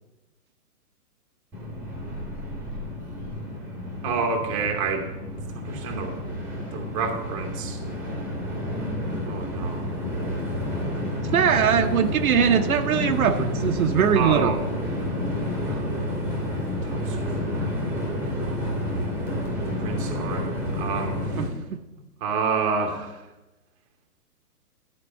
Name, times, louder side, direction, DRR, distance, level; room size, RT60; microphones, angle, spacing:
Train, 1.5-21.5, left 1 dB, 5° right, 1.1 m, -30 dB
voice 1, 4.0-5.1 5.5-6.2 6.7-7.8 9.3-9.9 14.2-14.6 15.7-16.0 16.8-17.7 18.4-18.6 19.8-21.2 22.2-23.2, right 5 dB, 20° right, 4 dB, 0.9 m, -29 dB
voice 2, 11.3-14.6 21.4-21.8, right 8 dB, 65° right, 7 dB, 0.8 m, -21 dB
11.5 x 4.7 x 6.8 m, 1.0 s
hypercardioid pair, 155°, 46 cm